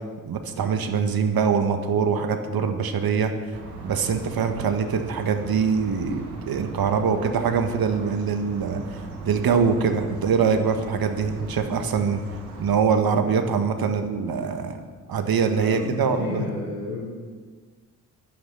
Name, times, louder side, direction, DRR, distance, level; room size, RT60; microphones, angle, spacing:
voice 1, 0.2-3.3 3.8-9.0 9.2-12.2 12.6-14.8 15.1-16.5, right 6 dB, 55° right, 6 dB, 1.7 m, -23 dB
sound 1, 3.5-12.7, right 3 dB, 85° right, 2.0 m, -39 dB
voice 2, 15.5-17.1, left 3 dB, 90° left, -6 dB, 3.6 m, -32 dB
16.0 x 11.5 x 5.6 m, 1.5 s
hypercardioid pair, 45°, 43 cm